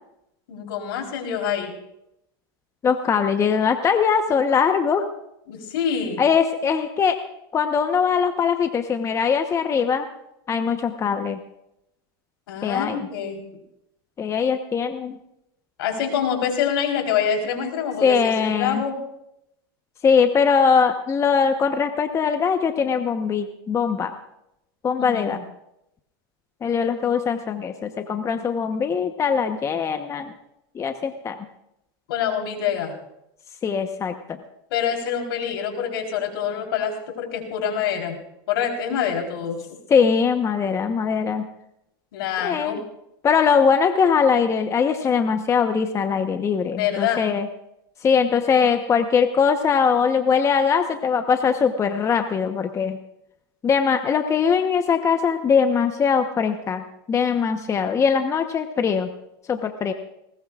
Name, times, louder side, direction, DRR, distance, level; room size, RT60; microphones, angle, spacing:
voice 1, 0.5-1.7 5.5-6.2 12.5-13.4 15.8-19.0 25.0-25.4 32.1-33.0 34.7-38.2 38.5-39.8 42.1-42.8 46.8-47.2, left 8 dB, 75° left, 3 dB, 3.9 m, -26 dB
voice 2, 2.8-5.1 6.2-7.2 7.5-10.1 10.5-11.4 12.6-13.0 14.2-15.2 18.0-18.8 20.0-24.1 24.8-25.4 26.6-30.3 30.7-31.4 33.6-34.4 39.9-41.5 42.4-42.8 43.2-47.5 48.0-53.0 53.6-59.1 59.5-59.9, left 6 dB, 25° left, 7 dB, 1.0 m, -21 dB
20.0 x 19.0 x 2.5 m, 0.83 s
supercardioid pair, 120°, 12 cm